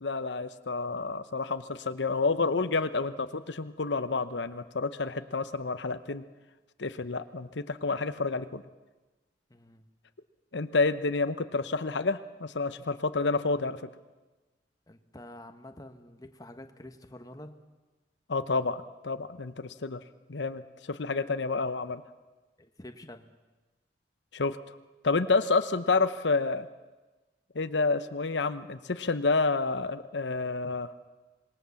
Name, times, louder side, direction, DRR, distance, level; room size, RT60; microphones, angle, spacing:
voice 1, 0.0-6.2 6.8-8.6 10.5-13.8 18.3-20.0 20.3-22.0 24.3-24.6 25.0-26.7 27.5-30.9, left 3 dB, 90° left, 11 dB, 0.9 m, -29 dB
voice 2, 9.5-9.9 14.9-17.6 22.6-23.3, left 1 dB, 20° left, 7 dB, 1.4 m, -47 dB
26.5 x 20.0 x 7.1 m, 1.2 s
head